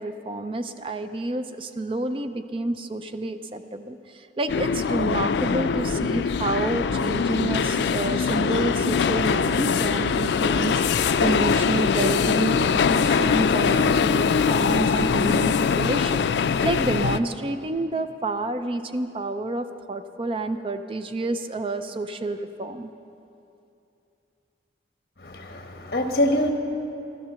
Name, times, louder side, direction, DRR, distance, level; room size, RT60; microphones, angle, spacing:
voice 1, 0.0-22.9, right 2 dB, 30° right, 9 dB, 0.4 m, -29 dB
sound 1, 4.5-17.2, left 6 dB, 75° left, 0.4 m, -22 dB
voice 2, 25.2-26.5, left 1 dB, 55° left, 4 dB, 1.3 m, -24 dB
13.0 x 12.0 x 6.8 m, 2.7 s
head